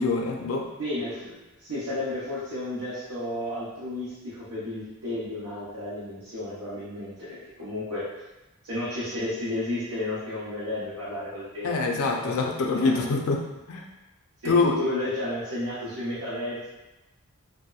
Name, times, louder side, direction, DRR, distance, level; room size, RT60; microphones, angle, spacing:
voice 1, 0.0-0.7 11.6-13.8 14.4-14.7, left 3 dB, 70° left, 1 dB, 0.4 m, -25 dB
voice 2, 0.8-8.0 8.6-11.7 12.2-13.2 14.4-16.7, left 1 dB, 70° right, -11 dB, 0.7 m, -32 dB
2.7 x 2.1 x 2.3 m, 1.0 s
head